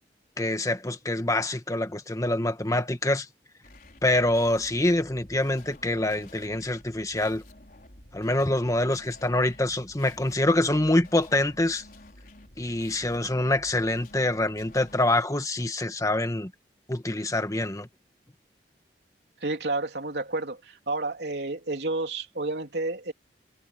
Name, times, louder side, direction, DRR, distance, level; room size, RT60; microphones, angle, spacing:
voice 1, 0.4-3.3 4.0-7.4 8.1-11.8 12.6-16.5 16.9-17.9, left 1 dB, 20° left, 1.4 m, -25 dB
sound 1, 3.6-14.9, left 1 dB, 55° left, 4.7 m, -50 dB
voice 2, 19.4-23.1, right 2 dB, 70° right, 3.2 m, -30 dB
head